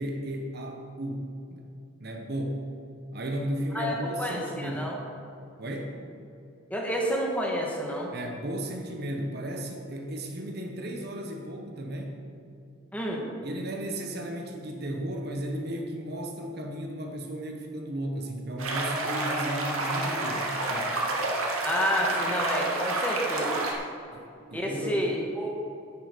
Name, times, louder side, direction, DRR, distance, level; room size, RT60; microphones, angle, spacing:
voice 1, 0.0-1.7 2.0-2.6 3.1-4.9 5.6-6.0 8.1-12.2 13.4-20.9 22.1-22.3 24.1-25.1, right 1 dB, 50° right, 2 dB, 1.1 m, -34 dB
voice 2, 3.7-4.9 6.7-8.1 12.9-13.3 21.6-23.6 24.5-25.5, equal, 5° left, -1 dB, 1.5 m, -29 dB
sound 1, 18.6-23.7, right 2 dB, 80° right, 1.9 m, -29 dB
11.0 x 10.0 x 5.2 m, 2.7 s
head